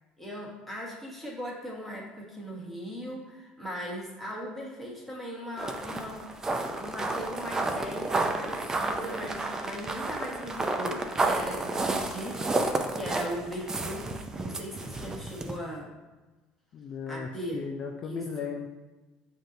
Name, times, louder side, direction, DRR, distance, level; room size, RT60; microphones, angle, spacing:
voice 1, 0.2-6.2 6.8-15.9 17.1-17.6 18.0-18.5, equal, 5° left, -4 dB, 1.3 m, -39 dB
sound 1, 5.6-15.6, right 2 dB, 20° right, 0.4 m, -31 dB
voice 2, 16.7-18.7, left 6 dB, 45° left, 3 dB, 0.3 m, -36 dB
7.2 x 2.7 x 2.6 m, 1.2 s
supercardioid pair, 110°, 3 cm